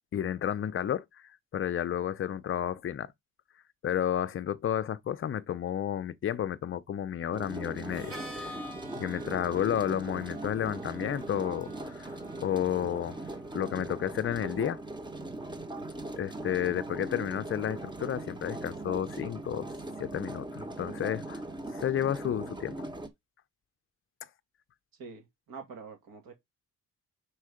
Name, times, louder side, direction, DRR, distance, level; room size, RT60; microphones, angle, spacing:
voice 1, 0.1-1.0 1.5-3.1 3.8-8.6 9.0-13.2 13.5-14.8 16.2-19.7 20.0-21.4 21.7-22.9, left 10 dB, 40° left, 0.5 m, -31 dB
sound 1, 7.3-23.1, right 2 dB, 15° right, 1.0 m, -40 dB
Harmonica, 7.9-13.6, equal, 40° right, 1.8 m, -48 dB
voice 2, 25.0-26.3, right 4 dB, 75° right, 2.4 m, -46 dB
5.5 x 4.5 x 4.9 m
cardioid pair, 145°, 34 cm